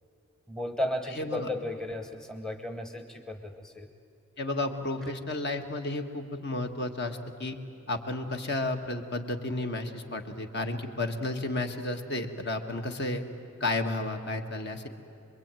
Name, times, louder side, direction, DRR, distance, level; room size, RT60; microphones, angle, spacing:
voice 1, 0.5-3.9, left 1 dB, 5° left, 6 dB, 1.0 m, -34 dB
voice 2, 1.2-1.5 4.4-7.6 7.9-13.2 13.6-14.9, left 2 dB, 50° left, 5 dB, 1.7 m, -32 dB
26.5 x 22.0 x 9.1 m, 2.7 s
head